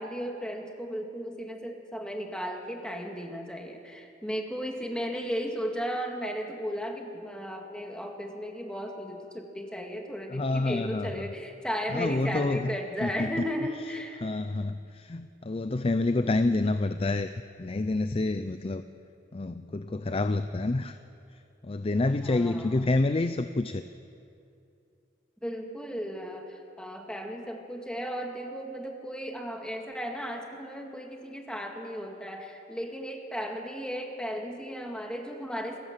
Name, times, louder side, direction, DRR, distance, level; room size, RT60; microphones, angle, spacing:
voice 1, 0.0-14.2 22.0-22.9 25.4-35.8, equal, 5° left, 2 dB, 1.9 m, -35 dB
voice 2, 10.3-11.3 11.9-13.3 14.2-17.3 17.6-18.8 19.3-21.0 21.6-23.8, left 2 dB, 30° left, 10 dB, 0.5 m, -28 dB
27.0 x 15.0 x 7.4 m, 2.6 s
head